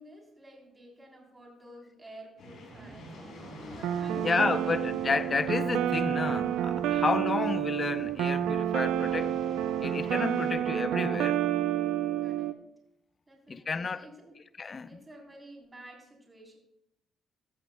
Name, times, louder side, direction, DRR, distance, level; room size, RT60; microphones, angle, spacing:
voice 1, 0.0-4.9 8.7-9.4 10.4-10.6 12.2-12.5 13.3-14.3 14.8-16.6, right 1 dB, 20° right, 3.5 m, -51 dB
sound 1, 2.4-10.5, left 2 dB, 75° left, 4.2 m, -51 dB
sound 2, 2.7-11.2, right 2 dB, 50° right, 3.1 m, -50 dB
sound 3, 3.8-12.5, right 11 dB, 90° right, 0.5 m, -29 dB
voice 2, 4.2-9.3 9.8-11.4 13.5-14.1 14.6-15.0, left 4 dB, 35° left, 0.6 m, -31 dB
15.0 x 13.0 x 2.2 m
cardioid pair, 90°, 0 cm